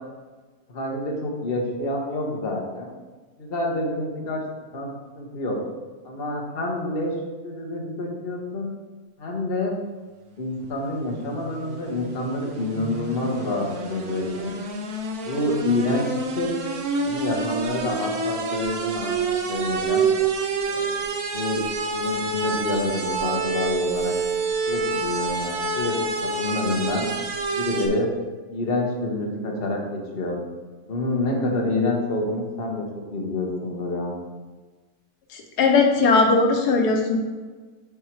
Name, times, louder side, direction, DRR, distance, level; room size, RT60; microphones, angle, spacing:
voice 1, 0.7-2.9 3.4-4.4 4.7-4.9 5.2-5.6 6.0-7.1 7.4-8.7 9.2-9.7 10.4-14.5 15.2-16.6 17.0-20.0 20.6-20.9 21.3-21.6 21.9-24.1 24.7-25.9 26.4-27.0 27.5-28.1 28.5-30.4 30.8-32.9 33.1-34.1, left 2 dB, 40° left, -1 dB, 1.4 m, -27 dB
sound 1, 11.1-27.9, right 4 dB, 70° right, 1.4 m, -28 dB
voice 2, 35.3-37.2, left 3 dB, 85° left, 2 dB, 1.5 m, -19 dB
7.6 x 4.5 x 4.6 m, 1.3 s
omnidirectional pair, 1.7 m